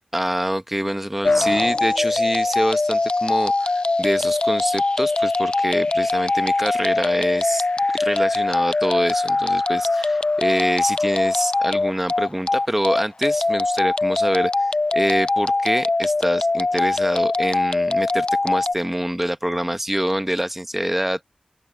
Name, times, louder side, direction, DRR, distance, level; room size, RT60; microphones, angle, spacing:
voice 1, 0.1-7.6 8.0-21.2, right 1 dB, 10° right, 1.0 m, -25 dB
sound 1, 1.2-18.7, left 3 dB, 45° left, 0.4 m, -21 dB
open air
wide cardioid pair, 60°, 2 cm